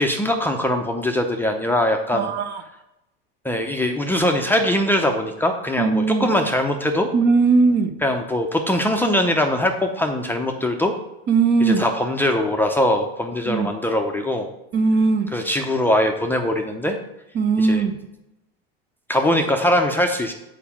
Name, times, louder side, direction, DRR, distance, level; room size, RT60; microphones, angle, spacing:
voice 1, 0.0-2.3 3.4-7.1 8.0-10.9 11.6-14.5 15.3-17.0 17.6-17.8 19.1-20.3, left 1 dB, 5° left, 3 dB, 0.5 m, -21 dB
voice 2, 2.1-2.5 5.8-6.3 7.1-7.9 11.3-11.8 13.5-13.7 14.7-15.3 17.4-18.0, right 4 dB, 35° right, 9 dB, 0.7 m, -19 dB
6.8 x 4.7 x 5.9 m, 0.91 s
supercardioid pair, 120°, 30 cm